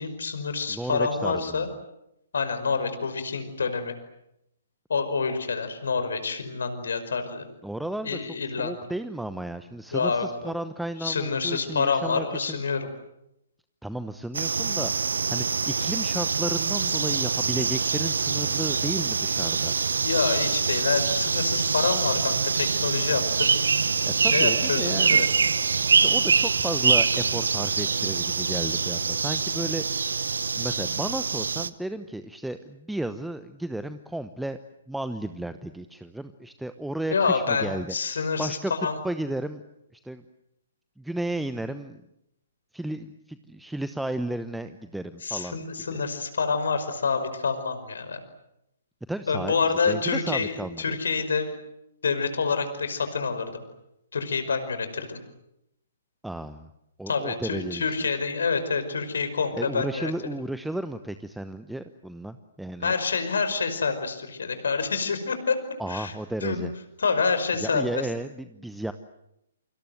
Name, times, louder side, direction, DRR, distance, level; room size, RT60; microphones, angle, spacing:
voice 1, 0.0-1.7 2.3-3.9 4.9-7.5 8.0-8.8 9.9-10.5 11.0-12.9 20.0-23.5 24.2-25.3 37.1-39.0 45.2-48.2 49.3-51.5 52.0-53.6 54.1-55.2 57.1-60.1 62.8-65.6 65.9-66.1 66.4-66.7 67.0-67.9, left 5 dB, 65° left, 9 dB, 5.4 m, -27 dB
voice 2, 0.7-1.7 7.6-8.2 8.6-12.6 13.8-19.7 24.2-25.2 25.9-30.0 30.6-34.6 34.9-39.6 40.0-40.2 41.0-42.0 42.7-45.6 45.9-46.0 49.1-51.0 56.2-56.7 57.0-57.9 59.5-62.9 65.8-66.7 67.6-68.9, right 1 dB, ahead, 11 dB, 1.0 m, -33 dB
sound 1, 14.3-31.7, right 5 dB, 70° right, 1.1 m, -25 dB
28.5 x 25.5 x 7.9 m, 0.84 s
figure-of-eight pair, 125°, 0 cm